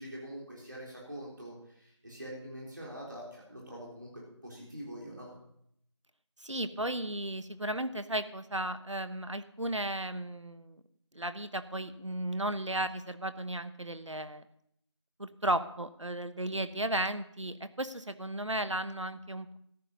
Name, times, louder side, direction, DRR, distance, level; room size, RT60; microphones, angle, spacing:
voice 1, 0.0-5.3, equal, 40° right, -4 dB, 3.9 m, -44 dB
voice 2, 6.4-10.8 11.1-14.4 15.2-19.6, right 1 dB, 90° right, 11 dB, 1.2 m, -34 dB
14.0 x 9.8 x 5.3 m, 0.72 s
figure-of-eight pair, 175°, 15 cm